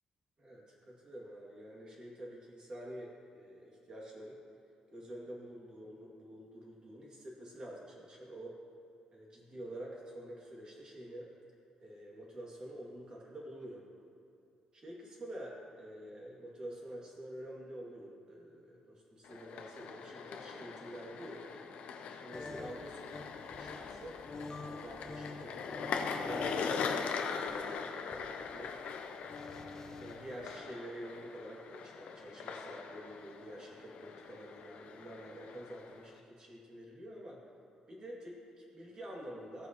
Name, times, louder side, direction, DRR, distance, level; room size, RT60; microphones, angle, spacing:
voice 1, 0.4-4.4 4.9-8.6 9.1-11.3 11.8-13.8 14.7-21.5 22.2-24.2 24.6-28.7 30.0-37.4 37.9-39.7, right 1 dB, 35° right, -3 dB, 2.5 m, -48 dB
sound 1, 19.2-36.2, left 6 dB, 70° left, 0.8 m, -41 dB
sound 2, 22.3-26.7 27.0-30.4, left 2 dB, 25° left, 0.9 m, -47 dB
17.0 x 9.4 x 3.1 m, 2.6 s
cardioid pair, 160°, 2 cm